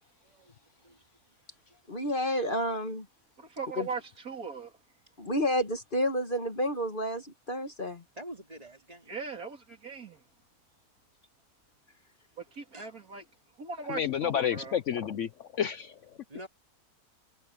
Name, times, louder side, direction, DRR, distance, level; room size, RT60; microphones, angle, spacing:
voice 1, 0.2-0.5 0.8-1.1 1.7-1.8 5.1-5.2 8.1-9.1 12.7-13.2 16.3-16.5, right 1 dB, 25° right, 3.1 m, -47 dB
voice 2, 1.9-3.1 3.8-3.9 5.2-8.0, equal, 35° left, 1.8 m, -30 dB
voice 3, 3.4-4.7 9.1-10.2 12.4-13.2 13.6-14.8, right 5 dB, 70° right, 3.4 m, -39 dB
voice 4, 13.9-15.9, left 9 dB, 60° left, 0.9 m, -30 dB
omnidirectional pair, 1.6 m